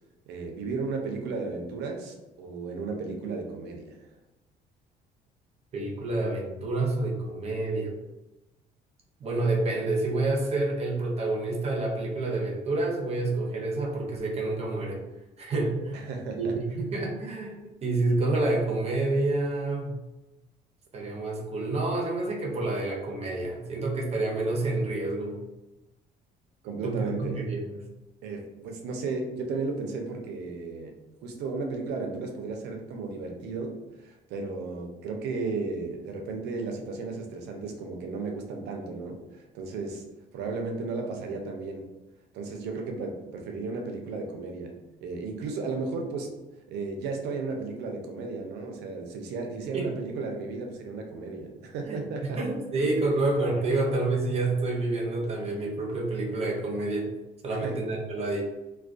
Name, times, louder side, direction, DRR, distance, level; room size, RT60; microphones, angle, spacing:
voice 1, 0.3-4.1 15.9-16.6 26.6-27.5 28.2-40.0 40.3-41.9 42.3-44.7 45.0-46.3 46.7-52.4 53.2-53.3 57.5-57.8, right 3 dB, 85° right, 2 dB, 0.5 m, -34 dB
voice 2, 5.7-7.9 9.2-15.0 15.4-16.1 16.4-20.0 20.9-25.4 26.8-27.7 49.7-49.9 51.9-57.1 57.4-58.4, right 2 dB, 40° right, -1 dB, 0.6 m, -28 dB
2.2 x 2.2 x 2.4 m, 1.0 s
cardioid pair, 110°, 17 cm